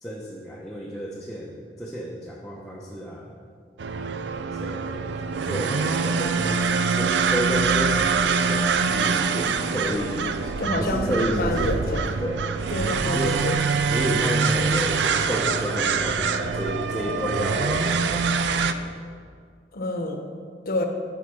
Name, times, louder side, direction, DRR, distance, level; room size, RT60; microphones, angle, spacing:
voice 1, 0.0-3.4 4.5-5.2 5.4-12.5 13.0-13.4 13.8-18.8, equal, 5° left, -4 dB, 0.8 m, -31 dB
sound 1, 3.8-18.7, right 5 dB, 75° right, 0.4 m, -24 dB
voice 2, 10.6-11.0 11.4-12.1 12.7-13.6 19.7-20.3 20.7-20.9, left 1 dB, 55° left, 5 dB, 0.9 m, -27 dB
7.8 x 5.2 x 6.9 m, 2.1 s
head